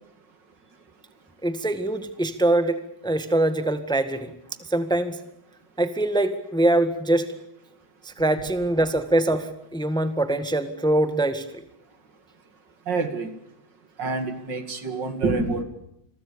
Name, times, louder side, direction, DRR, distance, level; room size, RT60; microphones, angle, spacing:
voice 1, 1.4-4.3 4.7-5.2 5.8-7.3 8.0-11.4, right 1 dB, ahead, 10 dB, 1.6 m, -23 dB
voice 2, 12.9-13.3 14.0-15.6, right 3 dB, 70° right, 9 dB, 3.0 m, -27 dB
28.5 x 22.0 x 7.0 m, 0.82 s
omnidirectional pair, 2.0 m